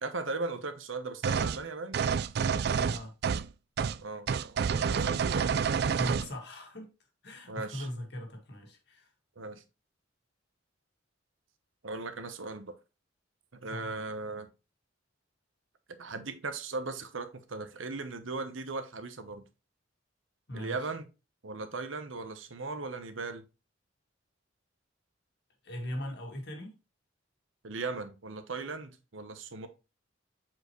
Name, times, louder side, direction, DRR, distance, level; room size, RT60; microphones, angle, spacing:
voice 1, 0.0-2.0 4.0-5.5 7.5-7.9 9.4-9.6 11.8-12.7 13.5-14.5 16.0-19.4 20.5-21.1 21.4-23.4 27.6-29.7, right 3 dB, 85° right, 1.0 m, -38 dB
sound 1, 1.2-1.6 1.9-3.5 3.8-4.0 4.3-6.3, right 6 dB, 55° right, 0.3 m, -28 dB
voice 2, 2.8-3.1 5.9-6.9 7.2-9.1 13.7-14.0 20.5-20.9 25.6-26.8, left 1 dB, 60° left, 1.8 m, -40 dB
7.7 x 4.5 x 3.1 m
head